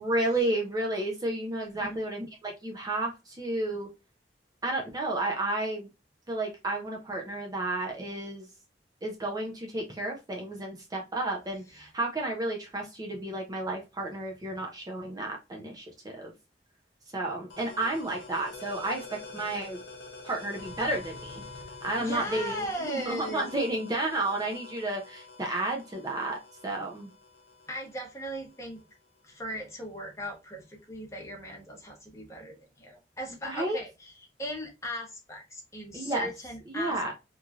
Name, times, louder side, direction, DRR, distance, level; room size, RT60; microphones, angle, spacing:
voice 1, 0.0-3.9 4.6-5.9 6.3-8.5 9.0-16.3 17.1-19.1 19.3-19.8 20.2-21.4 21.8-26.4 26.6-27.1 33.4-33.8 35.9-36.3 36.7-37.1, right 2 dB, 20° right, 0.5 m, -32 dB
sound 1, 17.5-28.9, left 3 dB, 80° left, 0.7 m, -46 dB
voice 2, 22.0-23.4 27.7-28.8 29.2-37.1, equal, 15° left, 0.8 m, -38 dB
3.0 x 2.5 x 2.3 m
head